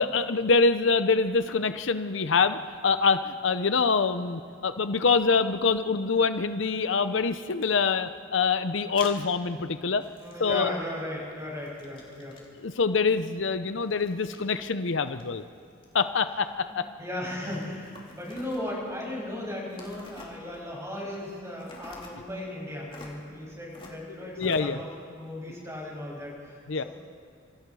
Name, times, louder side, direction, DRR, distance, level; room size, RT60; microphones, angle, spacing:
voice 1, 0.0-10.0 10.4-10.7 12.6-15.4 15.9-16.9 24.4-24.8 26.7-26.8, left 4 dB, 65° left, 10 dB, 0.7 m, -25 dB
sound 1, 7.5-7.7 9.0-9.2 10.0-11.0 11.3-12.6 13.8-14.5 14.9-16.0 17.3-18.8 19.7-20.7 21.6-22.2 22.9-23.2 23.7-24.0 24.4-24.6, left 3 dB, 25° left, 3.2 m, -48 dB
voice 2, 10.2-12.4 16.7-24.9 25.1-26.9, left 1 dB, 15° right, -3 dB, 6.8 m, -36 dB
26.5 x 25.5 x 4.8 m, 2.4 s
head